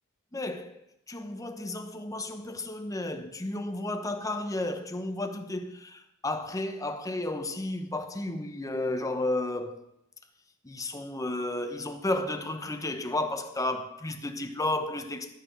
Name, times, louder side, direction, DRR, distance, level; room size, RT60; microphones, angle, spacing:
voice 1, 0.3-0.8 1.1-9.8 10.6-15.3, left 2 dB, 15° left, 0.8 m, -32 dB
13.0 x 8.8 x 5.3 m
head